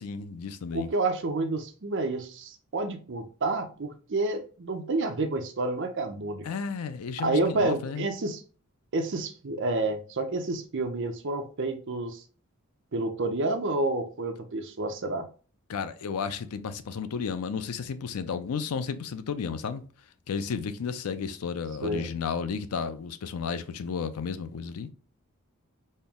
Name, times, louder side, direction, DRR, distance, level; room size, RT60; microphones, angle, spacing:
voice 1, 0.0-0.9 6.4-8.1 15.7-19.8 20.3-24.9, left 6 dB, 90° left, 0.4 m, -33 dB
voice 2, 0.7-6.5 7.2-8.4 8.9-12.2 12.9-15.3 21.8-22.1, right 2 dB, 60° right, 0.6 m, -29 dB
4.3 x 2.0 x 3.5 m
head